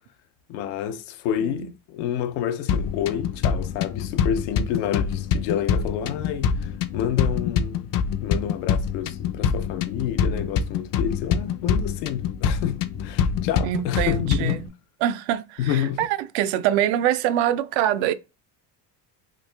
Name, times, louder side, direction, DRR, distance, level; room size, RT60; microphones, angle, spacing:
voice 1, 0.5-7.9 8.2-14.6 15.6-16.1, left 10 dB, 85° left, 0.7 m, -29 dB
sound 1, 2.7-14.7, left 7 dB, 45° left, 0.5 m, -25 dB
voice 2, 13.6-14.7 15.0-18.1, right 12 dB, 70° right, 0.6 m, -24 dB
3.3 x 2.4 x 3.2 m
supercardioid pair, 90°, 47 cm